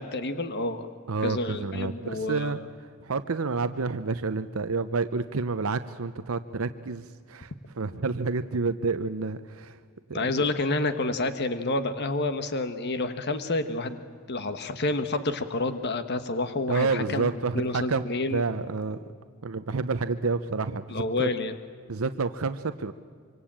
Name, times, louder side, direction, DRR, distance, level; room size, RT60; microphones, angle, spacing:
voice 1, 0.0-0.9 1.2-2.6 10.1-14.0 14.3-17.3 17.5-18.5 20.9-21.6, left 2 dB, 50° left, 9 dB, 1.3 m, -29 dB
voice 2, 1.1-2.6 3.0-9.8 10.1-10.5 16.7-18.0 18.3-19.0 19.4-21.3 21.9-22.9, right 4 dB, 70° right, 11 dB, 0.8 m, -29 dB
25.5 x 25.0 x 8.8 m, 2.1 s
head